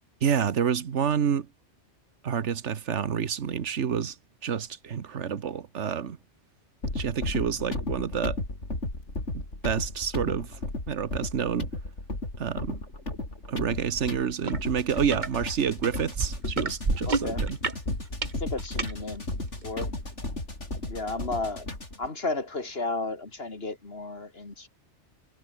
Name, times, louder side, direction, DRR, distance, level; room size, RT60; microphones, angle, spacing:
voice 1, 0.2-1.5 2.2-4.1 4.4-6.2 6.9-8.4 9.3-10.5 10.9-11.7 12.4-12.8 13.5-17.6, right 7 dB, 80° right, 1.5 m, -28 dB
sound 1, 6.8-22.1, left 2 dB, 90° left, 6.1 m, -34 dB
sound 2, 14.4-14.6 14.9-15.3 15.8-18.9 19.6-19.7, right 4 dB, 40° right, 1.7 m, -29 dB
voice 2, 17.1-17.4 18.4-19.3 19.6-19.9 20.9-21.7 22.0-24.7, left 3 dB, 60° left, 2.7 m, -33 dB
omnidirectional pair, 1.2 m